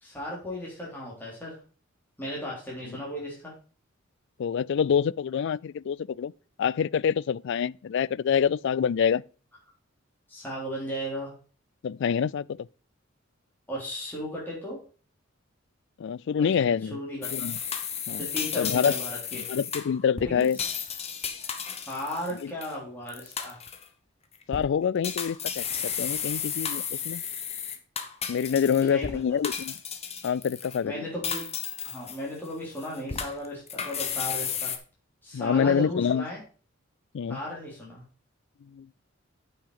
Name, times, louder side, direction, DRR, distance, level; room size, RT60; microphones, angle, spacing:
voice 1, 0.0-1.6 2.2-3.5 10.3-11.3 13.7-14.8 16.4-17.5 18.2-19.5 20.2-20.8 21.9-23.6 28.9-29.1 30.8-31.5 31.8-34.7 35.2-36.4 37.3-38.0, equal, 10° left, 3.6 m, -36 dB
voice 2, 4.4-6.3 6.6-9.2 11.8-12.7 16.0-17.0 17.3-17.6 18.1-18.2 18.6-19.0 19.3-20.6 22.4-22.5 24.5-27.2 28.3-29.8 30.2-31.0 35.3-36.2 37.1-37.4 38.7-38.9, left 7 dB, 60° left, 0.3 m, -26 dB
sound 1, 17.2-22.7 23.1-23.9 24.3-24.6 25.0-29.1 29.4-30.8 31.2-32.5 32.8-34.8, left 7 dB, 30° left, 1.1 m, -33 dB
8.9 x 5.9 x 4.9 m
head